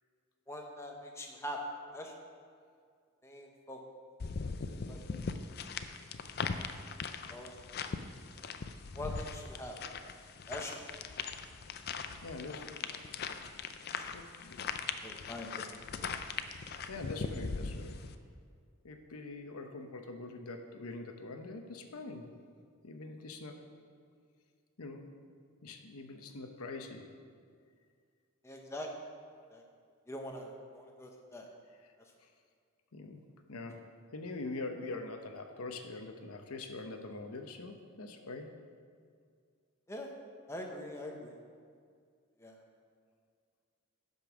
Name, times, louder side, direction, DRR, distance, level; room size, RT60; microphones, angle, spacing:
voice 1, 0.5-1.6 1.9-2.1 3.2-3.8 4.9-5.0 7.3-7.6 8.9-9.7 10.5-10.8 14.0-14.1 15.0-15.8 28.4-28.9 29.5-29.6 30.1-31.5 39.9-40.1 40.5-41.4 42.4-42.6, left 1 dB, 10° left, 1 dB, 0.9 m, -43 dB
sound 1, 4.2-18.2, left 5 dB, 45° left, 0.4 m, -40 dB
voice 2, 12.2-13.4 14.1-14.6 15.9-16.0 16.9-17.9 18.8-22.3 22.8-23.6 24.8-25.0 25.6-27.0 32.2-32.3 32.9-33.2 33.5-33.8 34.1-38.5, left 3 dB, 90° left, 5 dB, 0.8 m, -44 dB
10.5 x 5.4 x 6.1 m, 2.2 s
head